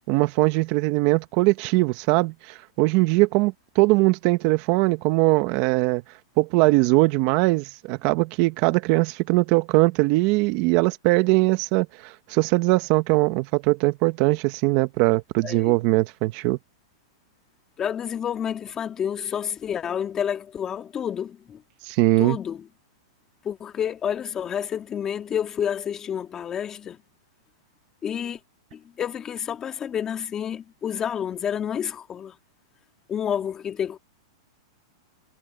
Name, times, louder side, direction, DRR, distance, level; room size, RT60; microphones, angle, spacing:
voice 1, 0.1-6.0 6.4-16.6 21.8-22.4, right 22 dB, 45° right, 1.4 m, -21 dB
voice 2, 15.4-15.7 17.8-21.6 22.2-22.6 23.4-27.0 28.0-28.4 28.7-32.3 33.1-34.0, left 8 dB, 20° left, 2.1 m, -29 dB
hypercardioid pair, 140°, 2 cm